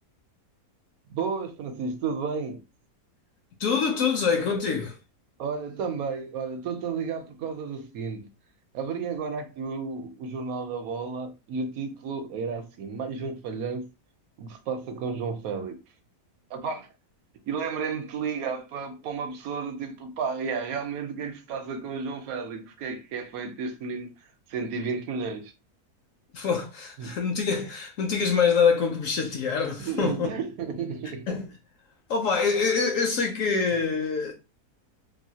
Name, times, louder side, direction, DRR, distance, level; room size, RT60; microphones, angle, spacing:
voice 1, 1.1-2.6 5.4-8.3 8.7-13.8 14.4-15.8 16.5-16.9 17.5-24.1 24.5-25.5 27.0-27.2 29.8-31.3, right 5 dB, 70° right, 1.1 m, -32 dB
voice 2, 3.6-4.9 26.3-30.3 31.3-31.4 32.1-34.3, left 5 dB, 65° left, 0.9 m, -25 dB
3.0 x 2.6 x 2.7 m
omnidirectional pair, 1.7 m